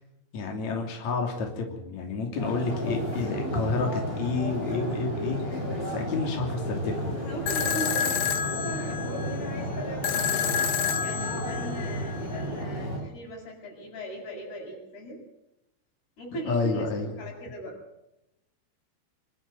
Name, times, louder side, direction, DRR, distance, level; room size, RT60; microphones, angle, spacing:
voice 1, 0.3-7.1 16.4-17.1, left 4 dB, 50° left, 2 dB, 4.0 m, -30 dB
sound 1, 2.4-13.0, equal, 20° left, 7.3 m, -32 dB
voice 2, 7.1-10.6 11.0-15.2 16.2-16.9 17.2-17.8, right 1 dB, 90° left, 0 dB, 9.9 m, -39 dB
sound 2, 7.5-12.5, left 8 dB, 65° left, 2.3 m, -30 dB
25.5 x 13.0 x 9.7 m, 0.89 s
omnidirectional pair, 4.5 m